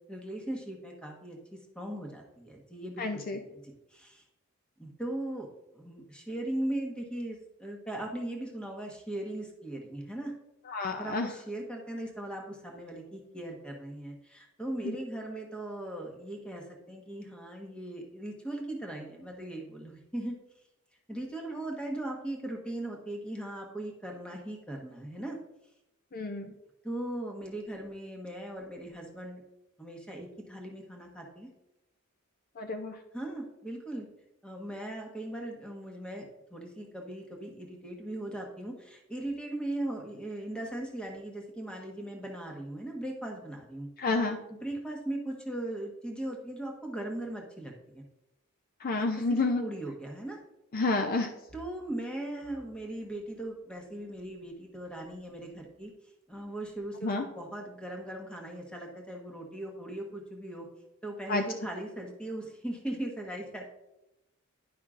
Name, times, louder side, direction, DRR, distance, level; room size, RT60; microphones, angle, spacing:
voice 1, 0.1-1.4 1.7-4.2 4.8-10.3 10.9-20.4 21.1-25.4 26.8-29.4 29.8-31.5 33.1-34.1 34.4-36.2 36.5-43.9 44.6-48.0 49.3-50.4 51.5-55.9 56.3-60.7 61.0-63.7, right 1 dB, 5° left, 0 dB, 1.2 m, -39 dB
voice 2, 3.0-3.4 10.7-11.3 14.8-15.0 26.1-26.5 32.6-32.9 44.0-44.4 48.8-49.6 50.7-51.3 57.0-57.3 61.3-61.4, left 3 dB, 45° left, 5 dB, 0.5 m, -29 dB
10.5 x 5.5 x 2.5 m, 0.90 s
head